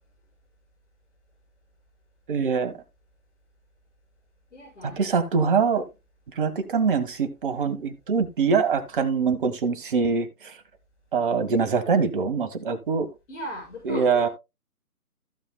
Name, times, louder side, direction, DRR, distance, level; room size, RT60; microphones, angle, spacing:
voice 1, 2.3-2.7 5.0-5.8 6.4-10.5 11.1-13.1 13.9-14.3, right 5 dB, 35° right, 1.5 m, -24 dB
voice 2, 4.5-5.1 13.3-14.3, left 1 dB, 50° left, 6.6 m, -38 dB
15.5 x 7.1 x 2.3 m
figure-of-eight pair, 140°, 45 cm